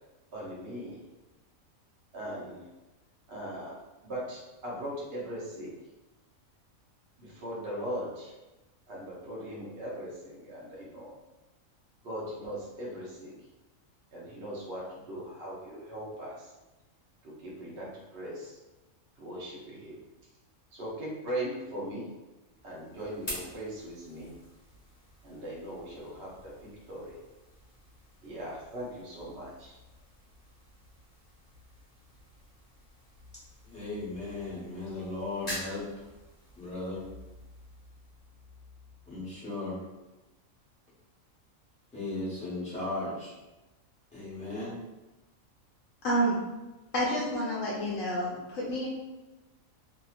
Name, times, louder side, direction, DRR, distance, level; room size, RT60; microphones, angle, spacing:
voice 1, 0.3-1.0 2.1-2.6 3.3-3.8 4.0-5.8 7.2-8.3 8.9-11.1 12.0-13.4 14.1-16.5 17.2-18.6 19.2-20.0 20.7-22.1 22.6-24.4 25.2-27.2 28.2-29.8, equal, 55° right, -5 dB, 0.8 m, -39 dB
sound 1, 22.4-39.3, left 1 dB, 30° left, 1.2 m, -48 dB
voice 2, 33.6-35.9 36.6-37.0 39.1-39.8 41.9-43.3 44.1-44.8, left 2 dB, 5° left, -10 dB, 1.0 m, -36 dB
voice 3, 46.0-46.4 46.9-48.9, right 1 dB, 70° left, -5 dB, 1.0 m, -29 dB
2.8 x 2.8 x 2.4 m, 1.1 s
omnidirectional pair, 1.4 m